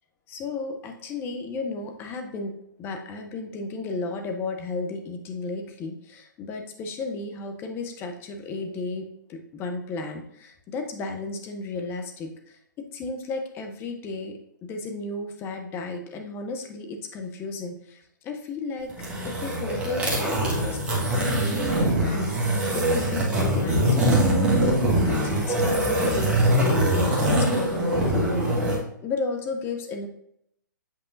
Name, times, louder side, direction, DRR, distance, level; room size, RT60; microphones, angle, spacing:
voice 1, 0.3-14.4 14.7-18.9 19.2-20.8 21.1-30.1, left 3 dB, 20° left, 4 dB, 0.9 m, -34 dB
sound 1, 18.9-28.8, right 1 dB, 10° right, 1.4 m, -23 dB
8.2 x 5.2 x 2.6 m, 0.74 s
figure-of-eight pair, 130°, 11 cm